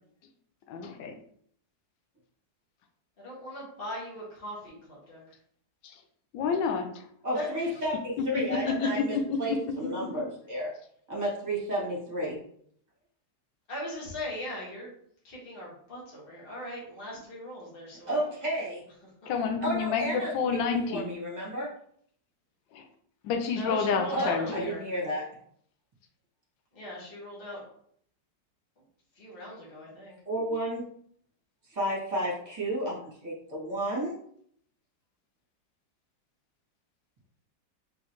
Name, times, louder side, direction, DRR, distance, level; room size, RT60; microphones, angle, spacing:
voice 1, 0.7-1.2 6.3-6.9 8.6-9.4 19.3-21.1 22.7-22.8 23.2-24.7, left 5 dB, 80° left, 6 dB, 1.3 m, -29 dB
voice 2, 3.2-5.2 7.3-7.7 8.6-8.9 13.7-14.9 15.2-18.2 19.2-19.3 23.5-24.8 26.7-27.6 29.2-30.2, equal, 30° left, -5 dB, 1.7 m, -39 dB
voice 3, 7.2-10.7 11.1-12.4 18.1-18.8 19.6-21.7 24.1-25.2 30.2-30.8 31.7-34.2, right 1 dB, 25° right, -5 dB, 1.8 m, -32 dB
3.9 x 3.8 x 3.0 m, 0.64 s
omnidirectional pair, 2.0 m